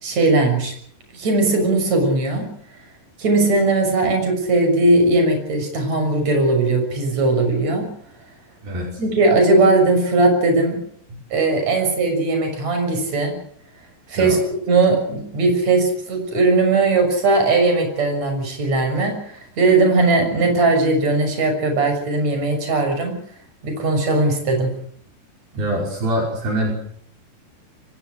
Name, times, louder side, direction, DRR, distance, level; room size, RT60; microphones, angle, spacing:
voice 1, 0.0-0.7 1.1-2.5 3.2-7.9 9.0-10.8 11.3-13.3 14.1-23.1 23.6-24.7, right 2 dB, 40° right, 5 dB, 7.5 m, -18 dB
voice 2, 8.6-9.0 11.1-11.2 14.2-14.4 25.6-26.7, right 1 dB, 60° right, 0 dB, 7.1 m, -24 dB
24.5 x 21.5 x 6.4 m, 0.62 s
omnidirectional pair, 4.8 m